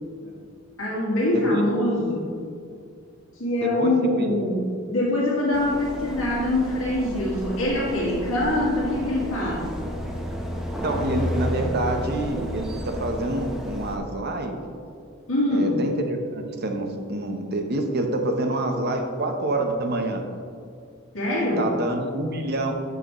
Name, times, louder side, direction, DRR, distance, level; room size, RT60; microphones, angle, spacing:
voice 1, 0.8-2.3 3.4-9.7 15.3-15.8 21.1-21.7, left 1 dB, 85° left, -5 dB, 2.0 m, -24 dB
voice 2, 3.6-4.3 10.8-14.5 15.5-20.2 21.6-22.7, right 2 dB, 55° right, 4 dB, 0.9 m, -27 dB
sound 1, 5.5-14.0, equal, ahead, 0.9 m, -31 dB
10.5 x 6.7 x 3.1 m, 2.3 s
head